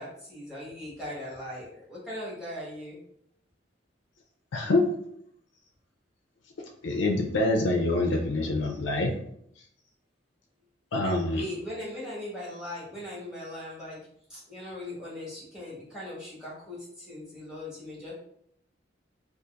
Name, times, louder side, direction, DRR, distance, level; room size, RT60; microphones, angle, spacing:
voice 1, 0.0-3.0 11.0-14.0 14.3-18.1, left 1 dB, 5° right, -7 dB, 1.4 m, -39 dB
voice 2, 4.5-4.9 6.8-9.1 10.9-11.4, left 2 dB, 80° left, 2 dB, 0.4 m, -25 dB
3.9 x 2.4 x 2.4 m, 0.69 s
head